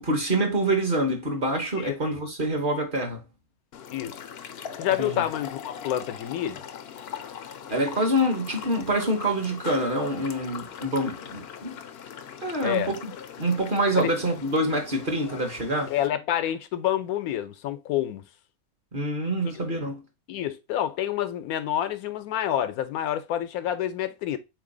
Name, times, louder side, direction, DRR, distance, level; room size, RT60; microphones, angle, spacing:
voice 1, 0.0-3.2 5.0-5.2 7.7-11.8 12.4-13.1 13.4-15.9 18.9-20.0, right 1 dB, 40° right, 0.9 m, -26 dB
sound 1, 3.7-16.1, left 8 dB, 65° left, 0.6 m, -41 dB
voice 2, 4.8-6.6 12.6-12.9 13.9-14.1 15.9-18.2 19.4-19.5 20.3-24.4, left 11 dB, 85° left, 1.1 m, -28 dB
4.0 x 3.1 x 3.7 m
omnidirectional pair, 1.5 m